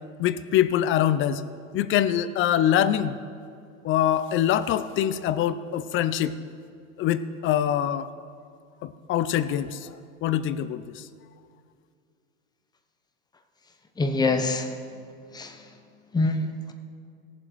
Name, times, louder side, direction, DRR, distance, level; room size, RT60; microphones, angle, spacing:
voice 1, 0.2-1.4 1.7-3.2 3.8-6.3 7.0-8.1 8.8-9.9 10.2-11.0, left 10 dB, 30° left, 14 dB, 0.4 m, -24 dB
voice 2, 14.0-14.7 15.3-15.5 16.1-16.7, left 3 dB, 10° left, 5 dB, 0.9 m, -25 dB
18.0 x 7.5 x 4.7 m, 2.3 s
supercardioid pair, 120°, 40 cm